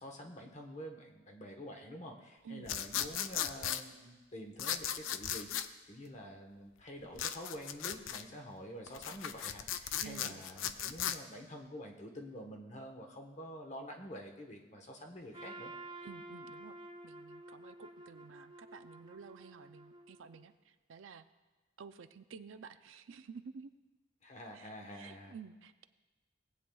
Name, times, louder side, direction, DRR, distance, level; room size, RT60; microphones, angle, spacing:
voice 1, 0.0-5.5 5.9-15.7 24.2-25.3, equal, 35° left, 3 dB, 1.1 m, -47 dB
voice 2, 2.4-2.8 10.0-10.5 16.0-16.8 17.0-21.3 21.8-23.7 24.5-25.8, right 5 dB, 80° right, 11 dB, 0.5 m, -52 dB
sound 1, 2.7-3.8 4.6-5.7 7.2-8.2 8.9-11.2, left 10 dB, 90° left, 0.4 m, -37 dB
Trumpet, 15.3-20.4, right 2 dB, 25° right, 0.5 m, -51 dB
18.5 x 8.9 x 2.3 m, 1.2 s
head